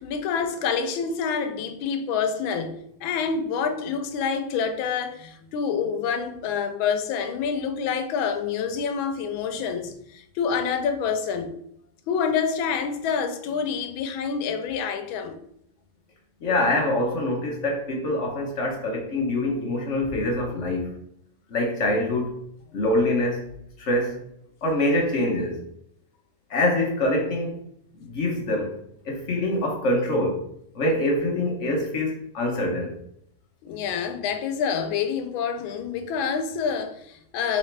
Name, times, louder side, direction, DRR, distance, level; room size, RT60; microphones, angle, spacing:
voice 1, 0.0-11.5 12.1-15.4 33.6-37.6, left 6 dB, 85° left, 1.4 m, -27 dB
voice 2, 16.4-20.9 21.5-22.3 22.7-23.5 23.8-24.2 24.6-25.6 26.5-27.6 27.9-28.7 29.0-30.4 30.7-32.9, left 1 dB, 50° left, 0.9 m, -25 dB
4.0 x 3.9 x 3.2 m
omnidirectional pair, 2.1 m